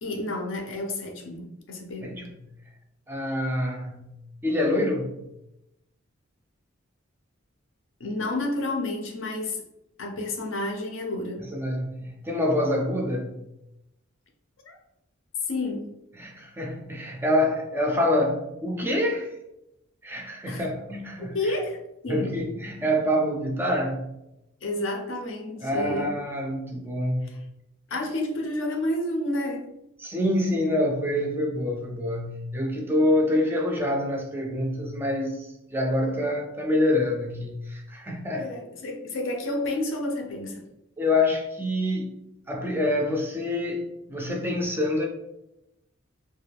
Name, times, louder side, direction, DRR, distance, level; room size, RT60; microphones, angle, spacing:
voice 1, 0.0-2.2 8.0-9.6 10.0-11.4 14.6-14.8 15.5-15.9 20.4-20.7 21.3-22.4 24.6-26.1 27.2-27.4 27.9-29.7 38.3-40.6, left 1 dB, 65° left, 3 dB, 0.5 m, -30 dB
voice 2, 3.1-4.2 4.4-5.2 11.4-13.4 16.1-19.3 20.0-21.6 22.1-24.1 25.6-27.5 30.0-38.5 41.0-45.1, left 1 dB, 10° right, 0 dB, 0.3 m, -26 dB
2.2 x 2.2 x 3.3 m, 0.87 s
head